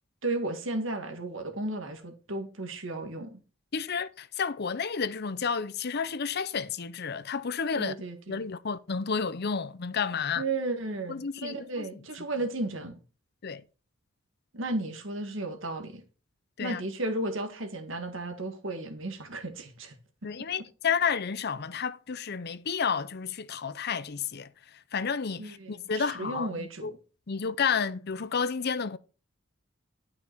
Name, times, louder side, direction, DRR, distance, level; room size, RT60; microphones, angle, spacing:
voice 1, 0.2-3.4 7.8-8.4 10.4-13.0 14.5-16.0 16.6-20.0 25.4-27.0, right 2 dB, 65° right, 1.8 m, -34 dB
voice 2, 3.7-8.0 8.3-10.4 11.1-11.9 13.4-13.6 16.6-16.8 20.2-26.9 27.3-29.0, left 6 dB, 50° left, 0.6 m, -31 dB
12.0 x 5.9 x 4.6 m
head